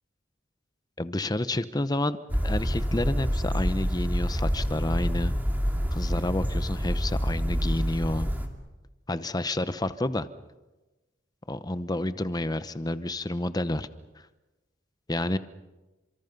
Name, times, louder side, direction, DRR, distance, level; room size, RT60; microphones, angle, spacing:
voice 1, 1.0-2.2 2.4-5.3 5.9-8.3 9.1-10.3 11.5-13.9 15.1-15.4, left 1 dB, 20° left, 13 dB, 0.9 m, -29 dB
sound 1, 2.3-8.5, equal, 10° right, 2.4 m, -27 dB
29.5 x 26.5 x 5.4 m, 1.1 s
head